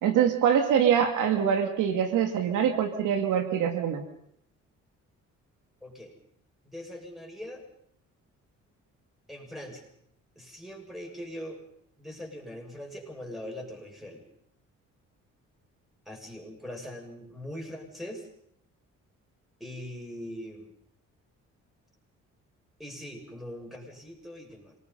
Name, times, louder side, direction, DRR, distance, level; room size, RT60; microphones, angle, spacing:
voice 1, 0.0-4.0, right 8 dB, 85° right, 6 dB, 2.5 m, -24 dB
voice 2, 5.8-6.1 6.6-7.7 9.3-9.9 10.4-11.6 12.0-14.2 16.1-18.3 19.6-20.7 22.8-24.8, equal, ahead, 1 dB, 7.2 m, -41 dB
27.0 x 20.0 x 5.6 m, 0.69 s
cardioid pair, 90°, 30 cm